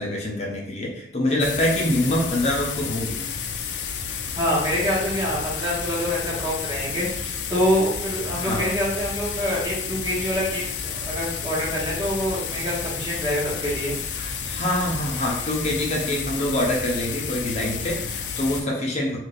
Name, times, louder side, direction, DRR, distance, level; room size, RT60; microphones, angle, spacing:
voice 1, 0.0-3.3 8.4-8.7 14.2-19.2, left 1 dB, 40° left, -2 dB, 0.6 m, -25 dB
sound 1, 1.4-18.6, left 6 dB, 85° left, 0.4 m, -31 dB
voice 2, 4.3-13.9, equal, 25° right, -7 dB, 1.2 m, -26 dB
2.5 x 2.3 x 3.9 m, 0.72 s
head